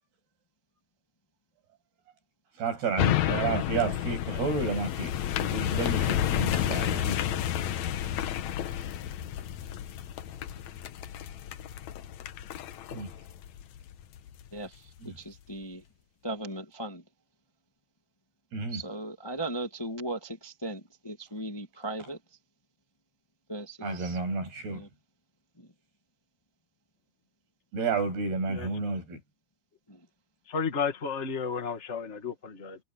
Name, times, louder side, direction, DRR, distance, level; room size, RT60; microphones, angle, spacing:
voice 1, 2.6-7.4 12.9-13.1 15.0-15.2 18.5-18.8 23.8-24.8 27.7-29.2, right 4 dB, 80° right, 9.9 m, -31 dB
sound 1, 3.0-14.4 14.9-15.0, left 11 dB, 75° left, 1.7 m, -31 dB
voice 2, 14.5-15.8 16.2-17.0 18.7-22.2 23.5-24.2 24.7-24.9 25.6-25.7 29.9-30.0, right 1 dB, 20° left, 0.6 m, -37 dB
voice 3, 30.5-32.8, left 5 dB, 45° left, 0.9 m, -32 dB
omnidirectional pair, 4.5 m